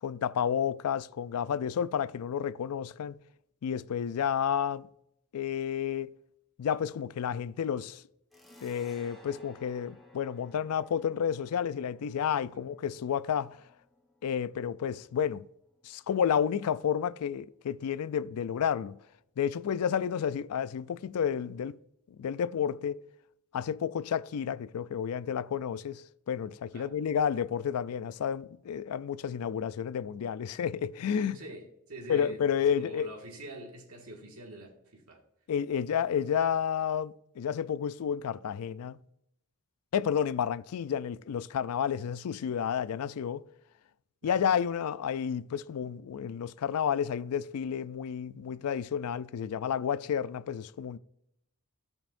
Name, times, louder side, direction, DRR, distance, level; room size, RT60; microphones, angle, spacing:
voice 1, 0.0-3.2 3.6-4.9 5.3-6.1 6.6-8.0 8.6-13.6 14.2-15.5 15.8-19.0 19.4-21.8 22.2-23.0 23.5-31.4 32.1-33.1 35.5-39.0 39.9-43.4 44.2-51.0, left 8 dB, 80° left, 0.4 m, -31 dB
sound 1, 8.3-15.5, left 1 dB, ahead, 1.4 m, -57 dB
voice 2, 31.1-32.4 32.8-35.2 44.2-44.4, right 1 dB, 70° right, 1.9 m, -45 dB
16.0 x 5.3 x 2.5 m
head